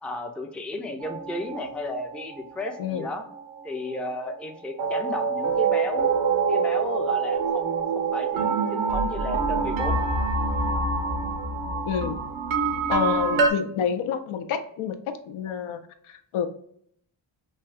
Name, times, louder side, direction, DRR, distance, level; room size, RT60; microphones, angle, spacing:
voice 1, 0.0-3.2 3.6-6.1 6.5-10.1, left 2 dB, 5° left, 4 dB, 0.3 m, -34 dB
sound 1, 1.0-4.5 4.8-13.5, right 4 dB, 75° right, 0.7 m, -26 dB
voice 2, 11.9-12.2 12.9-14.9 15.3-16.5, left 7 dB, 90° left, 7 dB, 0.6 m, -28 dB
3.3 x 2.7 x 2.4 m, 0.67 s
cardioid pair, 95°, 48 cm